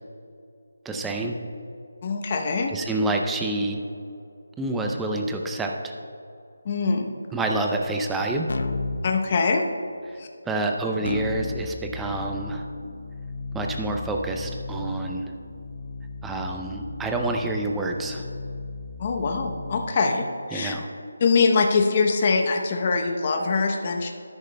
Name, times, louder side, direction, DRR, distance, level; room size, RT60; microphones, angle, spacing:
voice 1, 0.9-1.4 2.7-3.8 4.6-5.9 7.3-8.5 10.4-12.6 13.5-15.3 16.2-18.2 20.5-20.9, right 2 dB, 5° right, 2 dB, 0.5 m, -27 dB
voice 2, 2.0-2.7 6.6-7.1 9.0-9.6 10.2-10.3 19.0-20.7 21.2-24.1, left 4 dB, 30° left, 3 dB, 0.8 m, -23 dB
Keyboard (musical), 8.5-9.0 11.0-19.9, left 3 dB, 60° left, 0.6 m, -35 dB
13.0 x 11.0 x 2.2 m, 2.5 s
figure-of-eight pair, 170°, 0 cm